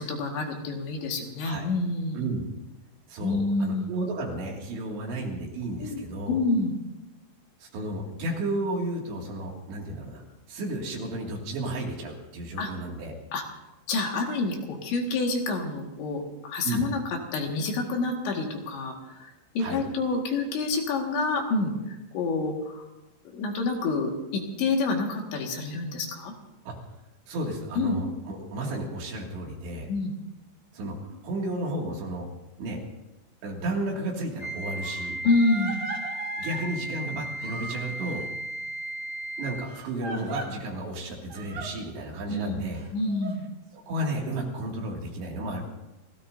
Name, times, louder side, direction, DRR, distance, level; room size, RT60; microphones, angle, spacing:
voice 1, 0.0-2.2 3.2-3.9 5.8-6.7 12.6-12.7 13.3-13.4 13.9-22.8 23.3-26.3 27.8-28.0 29.9-30.1 35.2-35.8 42.3-42.6 42.9-43.5, left 3 dB, 70° left, 1 dB, 4.0 m, -28 dB
voice 2, 2.1-2.4 3.1-6.4 7.6-10.2 10.5-13.2 16.6-16.9 19.6-19.8 26.7-26.8 27.3-29.9 30.7-32.3 32.6-32.8 33.4-35.2 36.4-38.2 39.4-42.8 43.7-45.6, right 1 dB, 65° right, -1 dB, 4.4 m, -33 dB
Crying sobbing, 33.9-34.0 34.8-36.7 37.4-38.2 39.7-40.5 41.3-41.7 42.7-43.3, right 3 dB, 45° right, 3.3 m, -38 dB
Wind instrument woodwind instrument, 34.4-39.8, right 1 dB, 90° left, 10.5 m, -35 dB
29.5 x 17.5 x 2.7 m, 1.0 s
omnidirectional pair, 5.7 m